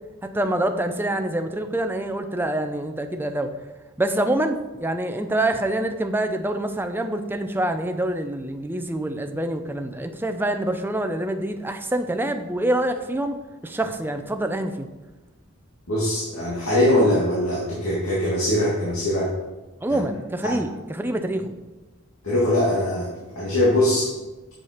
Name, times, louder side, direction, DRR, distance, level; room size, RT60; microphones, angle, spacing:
voice 1, 0.3-3.5 4.0-13.4 13.6-14.9 19.8-21.5, right 1 dB, 10° right, 7 dB, 0.5 m, -26 dB
voice 2, 15.9-19.3 19.9-20.0 20.4-20.5 22.2-24.1, left 1 dB, 85° left, -6 dB, 2.0 m, -22 dB
7.5 x 6.7 x 5.0 m, 1.1 s
head